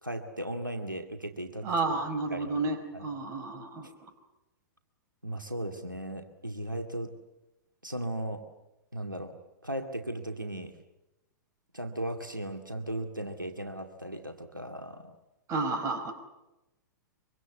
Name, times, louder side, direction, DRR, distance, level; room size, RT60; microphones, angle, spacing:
voice 1, 0.0-1.7 2.3-2.6 2.9-3.1 3.8-3.9 5.2-7.1 7.8-8.4 8.9-9.3 9.6-10.7 11.7-15.1, right 1 dB, 90° right, 5 dB, 2.2 m, -36 dB
voice 2, 1.6-3.9 15.5-16.1, right 3 dB, 30° right, 5 dB, 4.9 m, -31 dB
24.5 x 24.0 x 8.3 m, 0.97 s
figure-of-eight pair, 105°, 10 cm